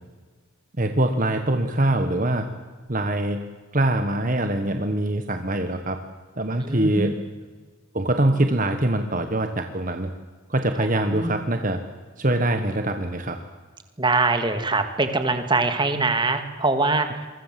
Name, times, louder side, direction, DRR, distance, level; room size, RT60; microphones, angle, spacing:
voice 1, 0.8-2.5 2.9-3.4 3.7-6.0 6.4-7.2 7.9-10.1 10.5-11.8 12.2-13.4, right 1 dB, 40° right, 7 dB, 1.5 m, -23 dB
voice 2, 6.6-7.1 10.8-10.9 11.1-11.3 14.0-17.2, right 3 dB, 20° right, 7 dB, 2.2 m, -23 dB
27.0 x 24.0 x 7.7 m, 1.4 s
head